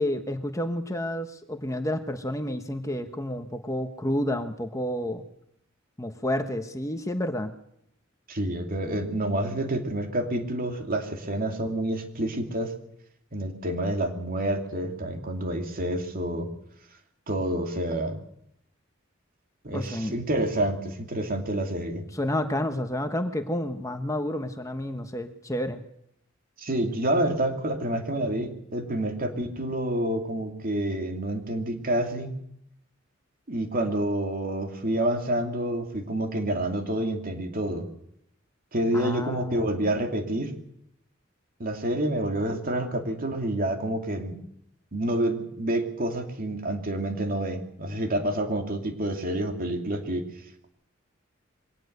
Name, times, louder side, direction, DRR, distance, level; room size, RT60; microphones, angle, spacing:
voice 1, 0.0-5.2 6.0-7.5 19.7-20.1 22.1-25.8 38.9-39.7, left 1 dB, 15° left, 7 dB, 1.2 m, -30 dB
voice 2, 8.3-12.7 13.3-16.5 17.3-18.2 19.6-22.1 26.6-32.3 33.5-37.9 38.7-40.5 41.6-44.4 44.9-50.3, right 1 dB, 45° right, 5 dB, 2.7 m, -28 dB
22.5 x 18.0 x 6.8 m, 0.74 s
head